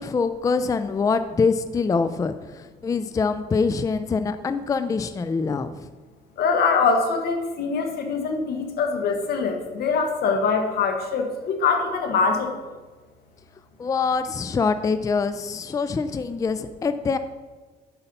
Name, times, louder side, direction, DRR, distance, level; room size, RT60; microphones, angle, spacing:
voice 1, 0.0-5.9 13.8-17.2, left 4 dB, 20° left, 11 dB, 0.4 m, -24 dB
voice 2, 6.4-12.6, left 5 dB, 70° left, 5 dB, 1.4 m, -23 dB
8.2 x 5.5 x 5.4 m, 1.3 s
cardioid pair, 110°, 17 cm